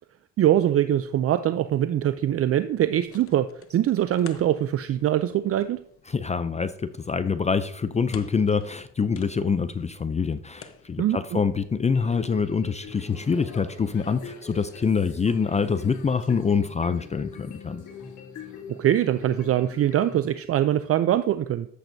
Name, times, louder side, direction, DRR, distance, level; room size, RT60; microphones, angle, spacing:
voice 1, 0.4-5.8 11.0-11.4 18.7-21.7, right 11 dB, 50° right, 12 dB, 0.4 m, -23 dB
sound 1, 2.6-13.5, left 6 dB, 45° left, 0.9 m, -51 dB
voice 2, 6.1-17.8, left 5 dB, 25° left, 12 dB, 0.4 m, -25 dB
sound 2, 11.9-20.2, left 5 dB, 65° left, 2.8 m, -43 dB
sound 3, 12.7-19.0 19.3-19.5, left 6 dB, 85° left, 1.7 m, -51 dB
13.0 x 7.9 x 2.7 m, 0.68 s
cardioid pair, 90°, 30 cm